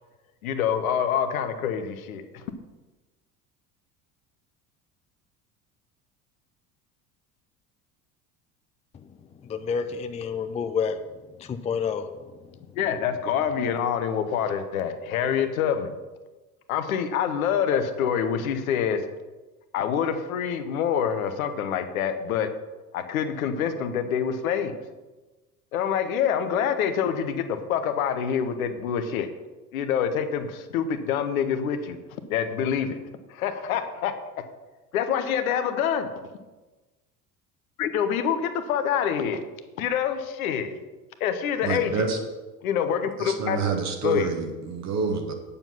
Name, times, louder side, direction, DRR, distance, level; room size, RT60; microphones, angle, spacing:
voice 1, 0.4-2.4 12.8-15.9 16.7-19.0 19.7-22.5 22.9-24.7 25.7-29.3 29.7-32.0 32.3-33.0 33.3-34.1 34.9-36.1 37.8-39.4 39.8-40.8 41.2-42.1 42.6-43.6 44.0-44.3, left 8 dB, 65° left, 9 dB, 1.1 m, -26 dB
voice 2, 9.4-11.0 11.4-12.1, left 6 dB, 15° left, 9 dB, 0.5 m, -28 dB
voice 3, 41.6-42.2 43.2-45.3, right 5 dB, 35° right, 3 dB, 1.4 m, -28 dB
9.0 x 7.0 x 5.8 m, 1.2 s
figure-of-eight pair, 65°, 46 cm